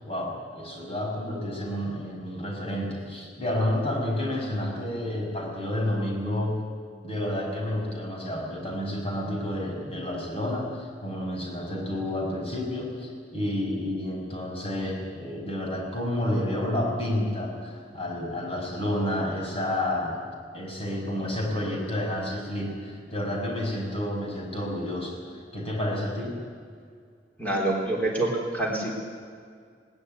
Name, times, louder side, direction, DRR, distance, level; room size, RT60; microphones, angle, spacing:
voice 1, 0.0-6.6 7.0-20.2 20.5-25.2 25.5-26.4, left 1 dB, 35° left, 0 dB, 5.6 m, -30 dB
voice 2, 27.4-28.9, right 2 dB, 10° left, -2 dB, 3.9 m, -26 dB
19.0 x 19.0 x 9.7 m, 2.1 s
head